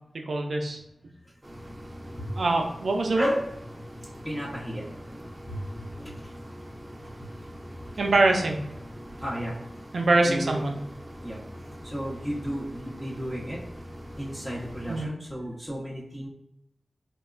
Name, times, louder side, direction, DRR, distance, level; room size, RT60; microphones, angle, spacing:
voice 1, 0.3-0.8 2.4-3.3 8.0-8.6 9.9-10.8 14.9-15.1, right 2 dB, 85° right, 2 dB, 0.4 m, -24 dB
sound 1, 1.4-15.1, equal, 25° right, 0.6 m, -43 dB
voice 2, 4.2-4.8 5.5-5.6 6.0-6.1 9.2-9.5 10.2-10.6 11.2-11.4 11.9-13.6 14.2-16.3, equal, 5° left, -6 dB, 0.8 m, -32 dB
2.9 x 2.1 x 2.4 m, 0.84 s
cardioid pair, 40°, 0 cm